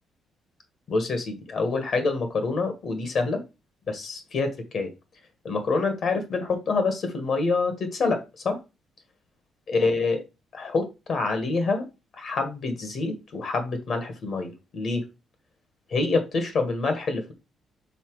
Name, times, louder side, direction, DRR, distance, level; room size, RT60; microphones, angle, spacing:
voice 1, 0.9-3.4 3.9-4.9 5.4-8.6 9.7-10.2 10.5-11.8 12.2-15.0 15.9-17.3, left 3 dB, 45° left, 7 dB, 1.4 m, -26 dB
5.8 x 4.1 x 4.6 m, 0.27 s
cardioid pair, 155°, 0 cm